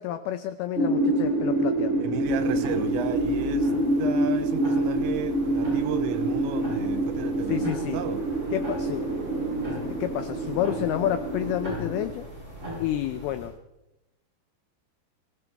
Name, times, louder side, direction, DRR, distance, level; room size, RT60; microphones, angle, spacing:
voice 1, 0.0-2.0 7.5-8.0 8.5-9.1 9.8-12.3 12.8-13.6, left 12 dB, 85° left, 2.2 m, -29 dB
sound 1, 0.8-12.1, right 1 dB, 50° right, 3.9 m, -27 dB
voice 2, 2.0-3.7 4.0-8.2, right 9 dB, 85° right, 3.1 m, -34 dB
sound 2, 2.2-13.5, right 1 dB, 15° right, 7.3 m, -40 dB
24.0 x 16.5 x 3.4 m
omnidirectional pair, 5.2 m